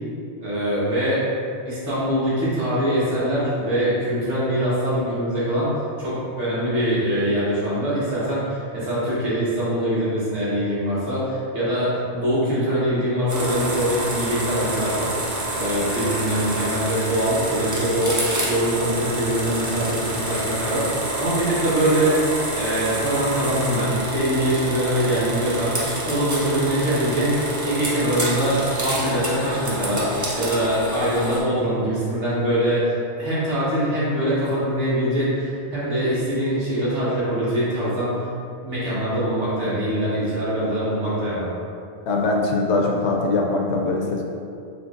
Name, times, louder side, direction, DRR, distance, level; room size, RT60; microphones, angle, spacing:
voice 1, 0.4-1.2 1.6-15.1 15.6-22.2 22.5-30.1 30.3-38.2 38.6-41.5, right 1 dB, 85° right, -10 dB, 1.6 m, -23 dB
sound 1, 13.3-31.4, right 1 dB, 25° right, 0.4 m, -28 dB
voice 2, 42.1-44.2, left 3 dB, 80° left, 0 dB, 0.8 m, -22 dB
5.0 x 3.1 x 2.5 m, 2.5 s
omnidirectional pair, 1.2 m